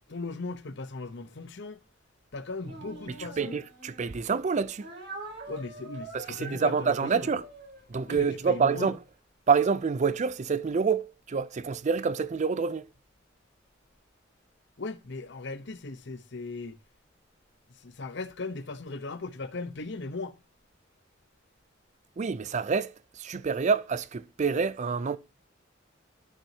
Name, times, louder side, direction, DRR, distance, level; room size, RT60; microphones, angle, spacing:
voice 1, 0.1-1.8 2.3-3.6 5.5-7.3 8.1-8.9 14.8-16.8 17.7-20.4, left 3 dB, 65° left, 0.9 m, -38 dB
Speech, 2.6-4.2 4.8-8.8, right 2 dB, 60° right, 4.3 m, -45 dB
voice 2, 3.4-4.9 6.1-7.4 7.9-9.0 9.5-12.9 22.2-25.2, right 5 dB, 40° right, 0.4 m, -27 dB
13.0 x 6.2 x 2.8 m
head